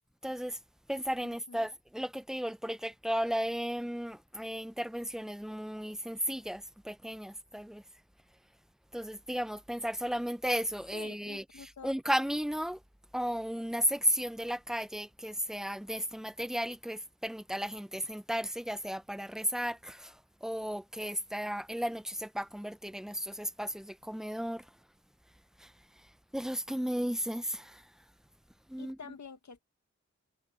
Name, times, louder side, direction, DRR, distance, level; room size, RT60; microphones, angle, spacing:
voice 1, 0.2-0.6 0.9-7.8 8.9-12.8 13.1-24.7 25.6-27.9 28.7-29.0, equal, ahead, 0.7 m, -34 dB
voice 2, 1.2-1.7 10.9-12.0 28.8-29.6, left 5 dB, 65° left, 1.7 m, -49 dB
wide cardioid pair, 70°, 31 cm